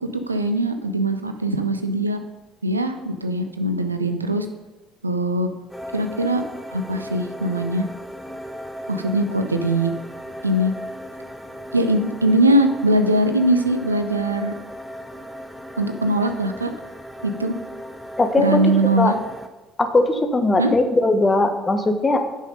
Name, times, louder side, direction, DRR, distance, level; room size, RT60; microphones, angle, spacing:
voice 1, 0.0-2.2 2.6-4.5 5.0-5.5 5.9-6.4 6.7-7.8 8.9-9.9 10.4-10.7 11.7-14.5 15.8-16.7 17.4-17.5 18.4-19.1 20.6-20.7, right 1 dB, 85° right, 7 dB, 0.6 m, -21 dB
sound 1, 5.7-19.5, equal, 5° right, 0.8 m, -36 dB
voice 2, 18.2-19.1 19.8-22.2, left 2 dB, 20° left, 6 dB, 1.2 m, -19 dB
9.8 x 5.5 x 5.2 m, 1.1 s
figure-of-eight pair, 55°, 0 cm